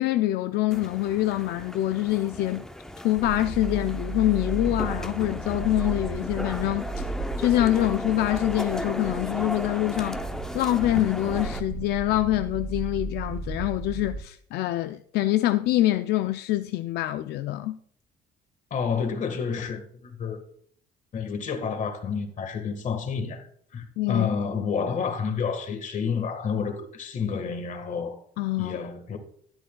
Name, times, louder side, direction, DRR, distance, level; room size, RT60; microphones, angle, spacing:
voice 1, 0.0-2.7 3.0-7.0 7.4-10.2 10.5-17.8 24.0-24.3 28.4-28.8, left 14 dB, 75° left, 0.4 m, -25 dB
sound 1, 0.7-11.6, left 1 dB, 5° left, 0.6 m, -36 dB
sound 2, 3.2-14.2, right 3 dB, 50° right, 2.9 m, -35 dB
voice 2, 18.7-20.4 21.1-23.5 23.7-28.2 28.6-29.2, left 6 dB, 50° left, 1.5 m, -29 dB
12.0 x 10.0 x 2.3 m
cardioid pair, 110°, 17 cm